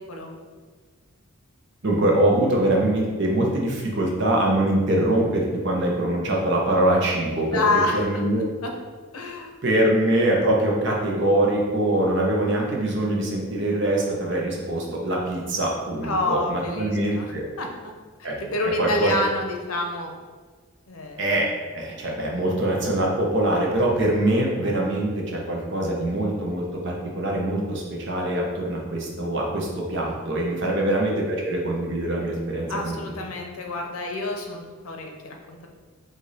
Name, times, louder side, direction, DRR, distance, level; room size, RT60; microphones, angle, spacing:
voice 1, 1.8-7.6 7.9-8.4 9.6-17.4 18.2-18.4 18.8-19.1 21.2-33.0, right 1 dB, 55° right, -2 dB, 0.9 m, -23 dB
voice 2, 7.5-8.0 8.6-8.7 9.1-9.5 16.0-17.7 18.4-20.1 20.9-21.2 30.6-31.0 32.7-35.7, left 2 dB, 80° left, 2 dB, 0.7 m, -28 dB
4.8 x 2.7 x 4.1 m, 1.5 s
head